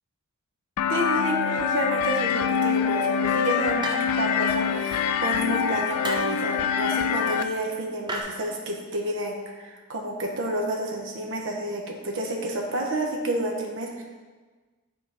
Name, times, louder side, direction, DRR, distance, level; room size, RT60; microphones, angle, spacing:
sound 1, 0.8-7.4, left 7 dB, 90° left, 0.3 m, -25 dB
voice 1, 0.9-14.0, right 1 dB, 60° right, 1 dB, 0.8 m, -30 dB
sound 2, 3.8-4.4 6.0-6.4 8.1-8.2, right 1 dB, 20° right, 0.6 m, -32 dB
5.8 x 3.9 x 4.8 m, 1.3 s
head